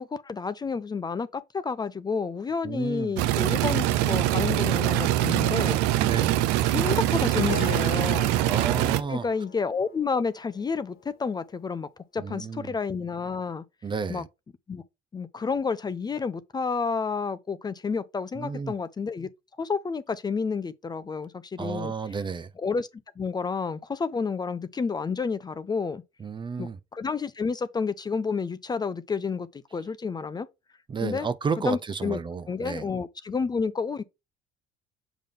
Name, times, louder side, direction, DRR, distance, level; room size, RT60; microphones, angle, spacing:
voice 1, 0.0-5.8 6.7-8.3 9.1-13.6 14.1-14.2 14.7-14.8 15.1-19.3 19.6-21.9 22.6-22.9 23.2-26.0 26.6-30.5 31.0-31.3 31.6-32.2 32.5-34.0, left 5 dB, 25° left, 0.5 m, -30 dB
voice 2, 2.6-3.2 6.0-6.4 8.5-9.3 12.2-12.7 13.8-14.3 18.3-18.7 21.6-22.5 26.2-26.8 30.9-32.8, right 5 dB, 30° right, 0.6 m, -32 dB
sound 1, 3.2-9.0, right 14 dB, 80° right, 0.5 m, -23 dB
Harp, 7.1-11.5, left 7 dB, 60° left, 1.3 m, -43 dB
7.0 x 3.7 x 3.6 m
supercardioid pair, 75°, 17 cm